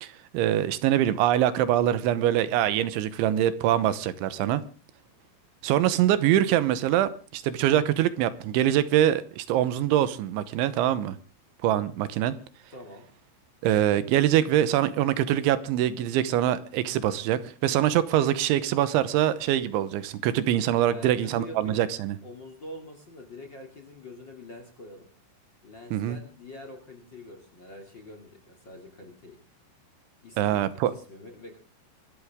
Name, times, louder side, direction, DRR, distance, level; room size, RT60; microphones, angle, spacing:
voice 1, 0.0-4.6 5.6-11.2 11.6-12.3 13.6-22.2 25.9-26.2 30.4-30.9, right 12 dB, 80° right, 3.3 m, -24 dB
voice 2, 12.7-13.1 20.9-21.8 22.2-25.1 25.6-29.4 30.2-31.6, left 2 dB, 30° left, 2.4 m, -45 dB
26.0 x 13.0 x 3.6 m
omnidirectional pair, 5.5 m